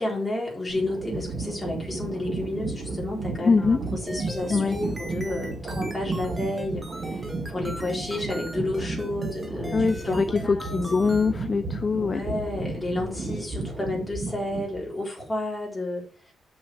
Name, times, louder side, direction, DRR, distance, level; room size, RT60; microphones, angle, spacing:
voice 1, 0.0-10.8 11.9-16.3, left 2 dB, 10° left, -3 dB, 4.2 m, -31 dB
sound 1, 0.7-14.9, right 3 dB, 40° right, 1.9 m, -33 dB
voice 2, 3.4-3.8 4.5-4.8 9.7-12.2, left 4 dB, 30° left, 12 dB, 0.3 m, -23 dB
sound 2, 4.1-11.3, right 1 dB, 10° right, 1.4 m, -41 dB
7.0 x 6.3 x 7.0 m, 0.42 s
wide cardioid pair, 165°, 0 cm